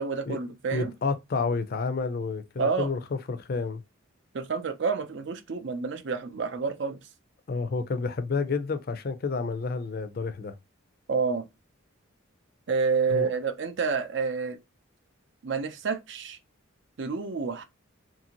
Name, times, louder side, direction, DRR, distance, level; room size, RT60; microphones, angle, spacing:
voice 1, 0.0-0.9 2.6-2.9 4.3-7.0 11.1-11.5 12.7-14.6 15.4-16.4 17.0-17.6, right 5 dB, 60° right, 0.5 m, -29 dB
voice 2, 0.7-3.0 3.3-3.8 7.5-10.5 13.1-13.3, left 4 dB, 45° left, 0.4 m, -30 dB
2.8 x 2.6 x 2.8 m
head